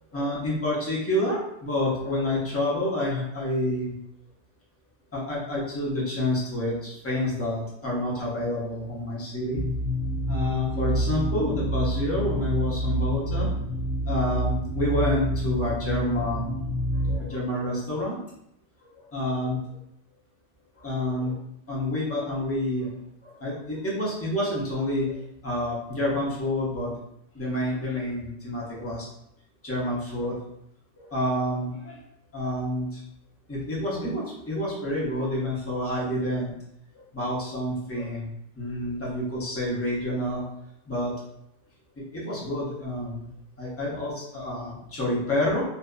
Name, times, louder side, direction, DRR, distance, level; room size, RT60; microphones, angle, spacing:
voice 1, 0.1-3.9 5.1-9.6 10.3-13.5 14.1-16.6 17.0-18.2 18.9-19.8 20.8-21.4 21.7-22.9 23.2-26.9 27.3-29.1 29.6-30.4 31.0-32.0 32.3-33.0 33.5-36.5 37.1-38.3 38.5-40.4 40.9-41.1 42.1-45.6, left 1 dB, 20° left, -5 dB, 0.4 m, -28 dB
sound 1, 9.5-17.2, equal, 65° left, 0.8 m, -28 dB
2.6 x 2.3 x 2.2 m, 0.78 s
omnidirectional pair, 1.3 m